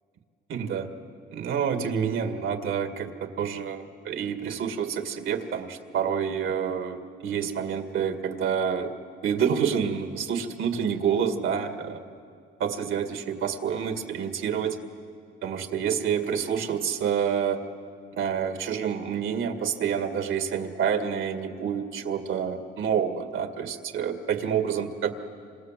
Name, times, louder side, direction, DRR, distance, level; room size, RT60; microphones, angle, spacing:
voice 1, 0.5-0.9 1.3-8.9 9.2-12.0 12.6-14.8 15.4-17.6 18.1-25.1, right 7 dB, 80° right, 6 dB, 2.1 m, -28 dB
27.0 x 26.5 x 7.6 m, 2.3 s
cardioid pair, 90°, 20 cm